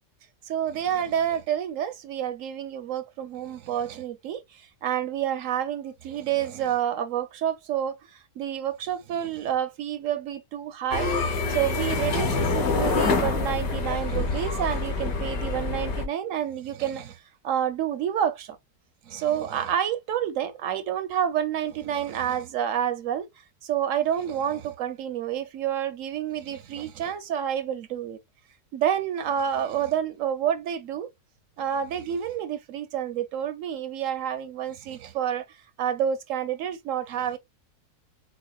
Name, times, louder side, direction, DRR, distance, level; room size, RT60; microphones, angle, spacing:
voice 1, 0.5-11.1 11.5-17.2 17.4-18.6 19.1-23.3 23.6-28.2 28.7-31.1 31.6-35.4 35.8-37.4, right 9 dB, 65° right, 0.8 m, -29 dB
sound 1, 10.9-16.0, left 3 dB, 65° left, 1.3 m, -26 dB
6.1 x 2.1 x 2.3 m
omnidirectional pair, 1.7 m